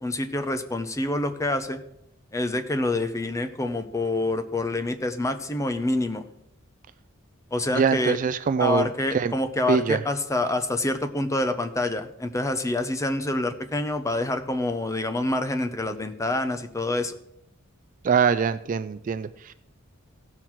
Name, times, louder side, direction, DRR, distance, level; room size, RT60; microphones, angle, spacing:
voice 1, 0.0-1.8 2.3-6.2 7.5-8.2 8.6-17.2, left 2 dB, 15° left, 8 dB, 0.6 m, -27 dB
voice 2, 7.7-9.3 9.7-10.0 18.0-19.5, right 6 dB, 35° right, 13 dB, 0.3 m, -23 dB
16.0 x 5.8 x 4.6 m, 0.78 s
head